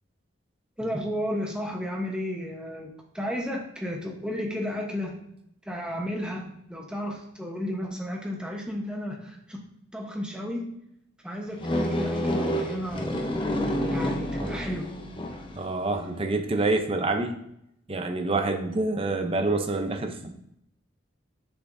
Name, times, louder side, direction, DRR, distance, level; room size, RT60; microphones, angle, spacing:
voice 1, 0.8-5.2 5.6-9.7 9.9-10.7 11.2-13.3 13.9-15.0 18.9-19.1, equal, 5° right, 0 dB, 1.0 m, -33 dB
sound 1, 11.6-15.7, equal, 25° left, 0.7 m, -28 dB
voice 2, 15.5-17.4 17.9-20.3, right 2 dB, 30° right, 6 dB, 0.6 m, -27 dB
6.8 x 5.6 x 2.7 m, 0.77 s
head